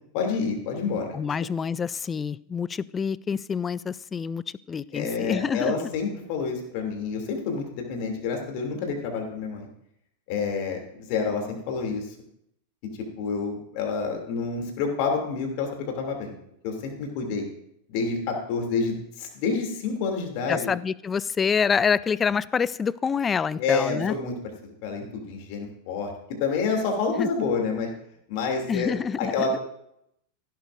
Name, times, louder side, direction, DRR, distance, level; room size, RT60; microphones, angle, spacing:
voice 1, 0.1-1.1 4.9-9.7 10.3-12.1 13.2-16.4 16.6-17.5 17.9-20.7 23.6-24.3 24.6-26.1 26.4-27.9 28.3-29.6, left 4 dB, 45° left, 2 dB, 2.9 m, -28 dB
voice 2, 1.1-5.9 20.5-24.1 27.2-27.3 28.7-29.6, left 6 dB, 20° left, 21 dB, 0.3 m, -27 dB
16.0 x 11.5 x 2.6 m, 0.75 s
figure-of-eight pair, 90°, 0 cm